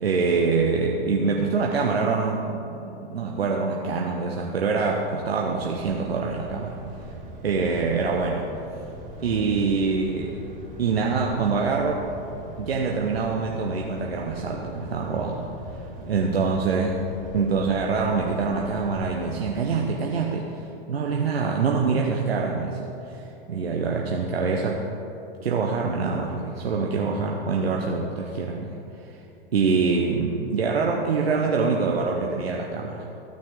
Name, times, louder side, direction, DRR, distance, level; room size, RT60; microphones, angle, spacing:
voice 1, 0.0-2.6 3.1-6.7 7.4-8.4 9.2-10.3 10.8-12.0 12.6-15.4 16.1-17.0 17.3-20.5 20.9-22.7 23.5-24.8 25.4-28.7 29.5-32.9, right 4 dB, 85° right, -1 dB, 0.9 m, -24 dB
sound 1, 5.5-19.4, right 1 dB, 25° right, 1.9 m, -40 dB
16.0 x 6.2 x 3.7 m, 3.0 s
hypercardioid pair, 95°, 30 cm